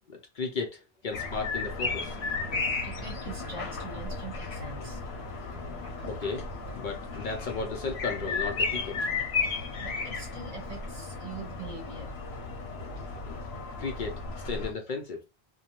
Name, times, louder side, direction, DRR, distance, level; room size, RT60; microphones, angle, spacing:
voice 1, 0.1-2.2 6.0-9.0 13.3-13.4 13.8-15.2, left 4 dB, 55° left, 0.6 m, -35 dB
sound 1, 1.1-14.7, left 4 dB, 85° left, 0.9 m, -34 dB
Guitar, 1.8-9.2, equal, 10° right, 0.9 m, -50 dB
voice 2, 2.1-5.0 5.4-5.5 5.8-6.0 9.5-12.1 14.5-14.6, right 4 dB, 45° right, 0.8 m, -44 dB
2.6 x 2.2 x 2.8 m
omnidirectional pair, 1.1 m